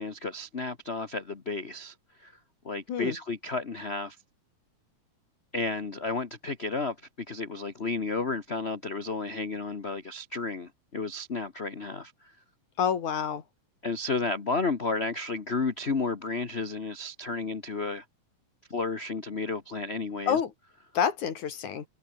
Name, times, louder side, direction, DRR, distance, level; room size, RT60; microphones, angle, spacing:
voice 1, 0.0-1.9 2.2-2.3 2.6-4.2 5.5-7.0 7.3-12.3 13.8-18.0 18.7-20.4, left 3 dB, 40° left, 0.9 m, -32 dB
voice 2, 12.8-13.4 20.3-20.5 20.9-21.9, left 8 dB, 75° left, 3.8 m, -28 dB
omnidirectional pair, 3.5 m